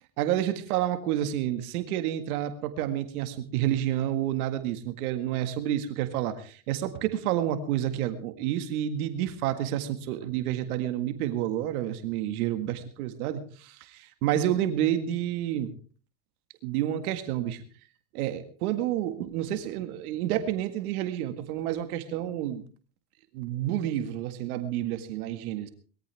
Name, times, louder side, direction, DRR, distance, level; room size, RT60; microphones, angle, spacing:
voice 1, 0.2-15.7 16.6-17.6 18.1-22.6 23.3-25.7, right 12 dB, 80° right, 9 dB, 1.9 m, -29 dB
21.0 x 14.5 x 3.5 m, 0.41 s
supercardioid pair, 120°, 43 cm